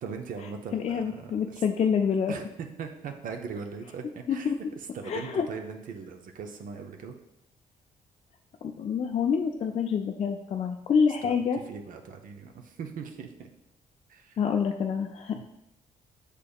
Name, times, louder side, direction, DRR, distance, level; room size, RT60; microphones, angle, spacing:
voice 1, 0.0-1.6 2.3-4.5 4.9-7.2 11.2-13.5 14.1-14.4 15.3-15.4, right 6 dB, 60° right, 4 dB, 0.5 m, -40 dB
voice 2, 0.7-2.3 4.3-4.6 5.1-5.5 8.6-11.6 14.4-15.4, left 6 dB, 40° left, 3 dB, 0.4 m, -27 dB
6.5 x 3.4 x 2.3 m, 0.86 s
supercardioid pair, 60°, 16 cm